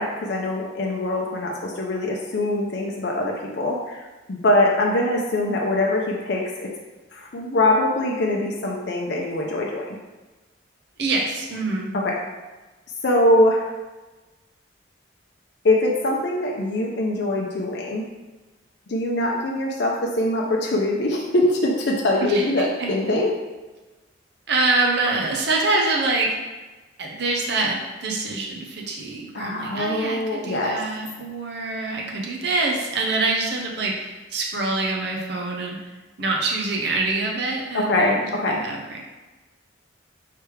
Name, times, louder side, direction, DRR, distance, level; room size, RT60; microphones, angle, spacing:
voice 1, 0.0-4.0 4.3-6.7 7.1-10.0 11.9-12.2 13.0-13.7 15.6-18.0 18.9-23.3 29.3-30.8 37.7-38.6, left 1 dB, 60° left, -2 dB, 0.5 m, -23 dB
voice 2, 11.0-11.9 22.2-22.9 24.5-26.3 27.0-35.8 36.2-38.2 38.5-39.0, right 3 dB, 55° right, -1 dB, 0.7 m, -25 dB
3.3 x 3.2 x 4.6 m, 1.2 s
head